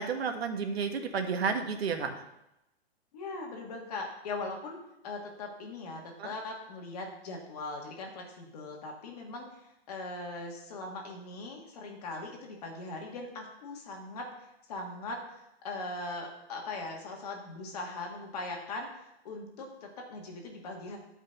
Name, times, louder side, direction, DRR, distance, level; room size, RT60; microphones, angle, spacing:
voice 1, 0.0-2.1 6.2-6.3, right 5 dB, 70° right, 5 dB, 1.5 m, -31 dB
voice 2, 3.1-9.5 9.9-21.0, left 2 dB, 35° left, 0 dB, 2.0 m, -40 dB
10.5 x 5.4 x 6.5 m, 0.87 s
hypercardioid pair, 175°, 32 cm